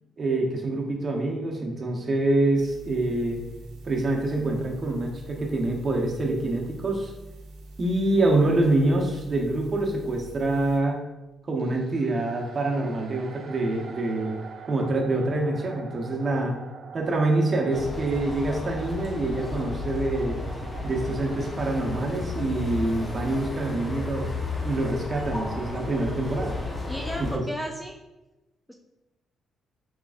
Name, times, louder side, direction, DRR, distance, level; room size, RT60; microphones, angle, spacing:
voice 1, 0.2-3.4 3.8-7.1 7.8-11.0 11.5-14.3 14.7-16.6 16.9-20.4 20.8-24.3 24.6-26.5 27.2-27.4, right 2 dB, 40° right, 0 dB, 0.9 m, -26 dB
sound 1, 2.5-10.8, right 1 dB, 85° right, 0.9 m, -45 dB
sound 2, 11.6-22.1, right 5 dB, 55° right, 0.5 m, -45 dB
sound 3, 17.7-27.4, left 2 dB, 25° left, 0.7 m, -33 dB
voice 2, 26.9-28.0 28.7-28.8, equal, 5° left, 1 dB, 0.4 m, -34 dB
4.6 x 3.7 x 2.4 m, 1.0 s
cardioid pair, 90°, 0 cm